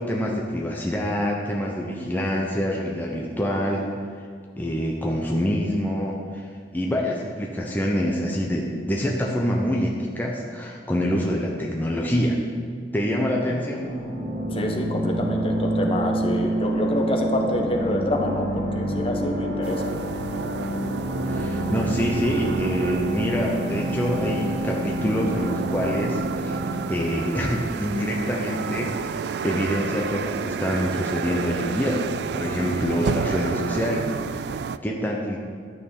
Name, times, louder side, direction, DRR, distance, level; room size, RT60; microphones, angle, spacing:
voice 1, 0.0-3.9 4.6-6.5 6.7-12.4 12.9-13.9 21.2-35.4, equal, 10° left, -2 dB, 0.9 m, -26 dB
sound 1, 13.8-26.9, right 1 dB, 40° right, 2.6 m, -28 dB
voice 2, 14.5-19.9, left 1 dB, 30° left, 2 dB, 1.1 m, -26 dB
sound 2, 19.6-34.8, right 6 dB, 65° right, 0.3 m, -31 dB
11.5 x 6.2 x 7.2 m, 2.1 s
head